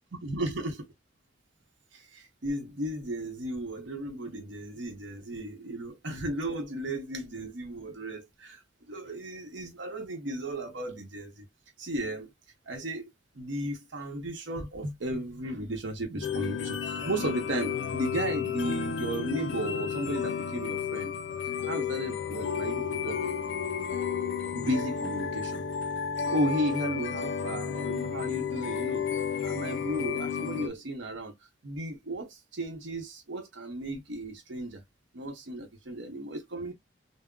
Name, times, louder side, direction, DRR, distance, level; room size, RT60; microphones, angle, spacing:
voice 1, 0.2-0.9 1.9-8.6 8.9-11.5 11.8-12.3 12.7-21.1 21.7-23.3 24.5-25.6 26.3-29.1 29.4-31.3 31.6-34.8 35.1-36.7, right 1 dB, 85° right, 0.8 m, -34 dB
sound 1, 16.2-30.7, left 7 dB, 75° left, 0.4 m, -32 dB
3.6 x 2.0 x 2.3 m
head